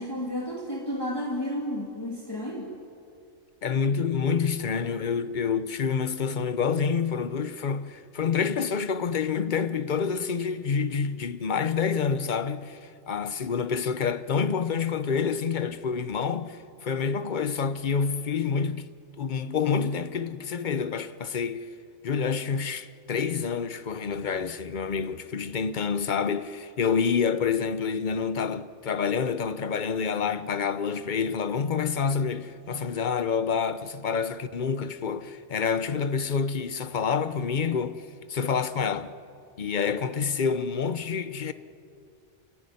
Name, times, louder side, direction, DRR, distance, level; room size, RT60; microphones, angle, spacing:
voice 1, 0.0-2.7, left 1 dB, 20° left, 2.5 m, -32 dB
voice 2, 3.6-12.8 13.1-18.9 19.2-21.7 22.0-38.0 38.3-39.1 39.6-41.5, left 6 dB, 45° left, 0.9 m, -28 dB
29.0 x 14.5 x 9.4 m
omnidirectional pair, 1.2 m